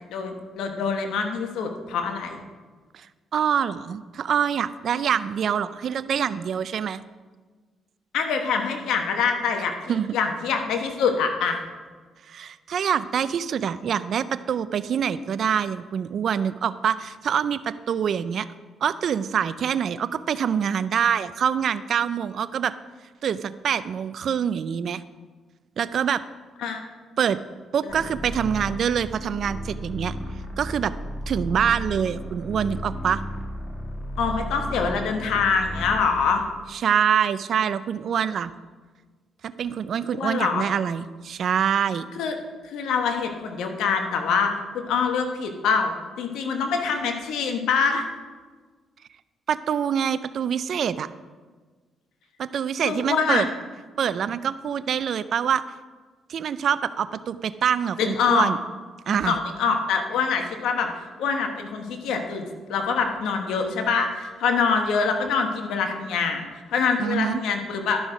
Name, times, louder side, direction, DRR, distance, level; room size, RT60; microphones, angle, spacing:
voice 1, 0.1-2.4 8.1-9.7 10.1-11.6 26.6-26.8 27.8-27.9 34.2-36.4 40.1-40.6 42.1-42.3 42.7-48.0 52.8-53.5 58.0-58.5 59.1-60.9 61.2-68.0, left 5 dB, 85° left, 5 dB, 1.2 m, -25 dB
voice 2, 3.3-7.0 9.9-10.2 12.3-18.5 18.8-22.7 23.2-25.0 25.8-26.2 27.2-27.4 27.7-30.1 30.6-30.9 31.3-33.2 36.7-38.5 39.4-42.1 49.5-51.1 52.4-53.5 54.0-55.6 56.3-58.6 59.1-59.4 67.0-67.4, right 8 dB, 60° right, 15 dB, 0.4 m, -25 dB
sound 1, 27.9-36.1, equal, 30° left, 1.5 m, -34 dB
12.0 x 6.2 x 5.0 m, 1.4 s
cardioid pair, 90°, 0 cm